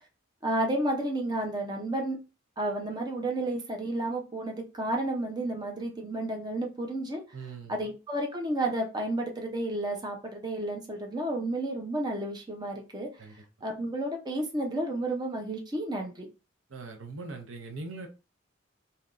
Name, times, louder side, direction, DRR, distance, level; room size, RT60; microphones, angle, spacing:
voice 1, 0.4-2.2 2.6-7.2 7.7-13.1 13.6-16.3, right 1 dB, 20° right, 0.6 m, -31 dB
voice 2, 7.3-7.8 13.2-13.4 16.7-18.1, right 3 dB, 90° right, 0.7 m, -41 dB
3.4 x 2.8 x 2.5 m
head